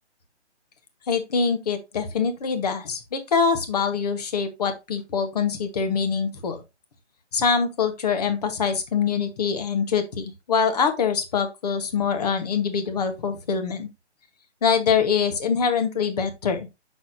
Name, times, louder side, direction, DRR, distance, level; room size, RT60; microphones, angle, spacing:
voice 1, 1.1-6.6 7.3-13.9 14.6-16.7, left 6 dB, 35° left, 1.2 m, -24 dB
6.6 x 6.3 x 2.6 m
figure-of-eight pair, 150°, 35 cm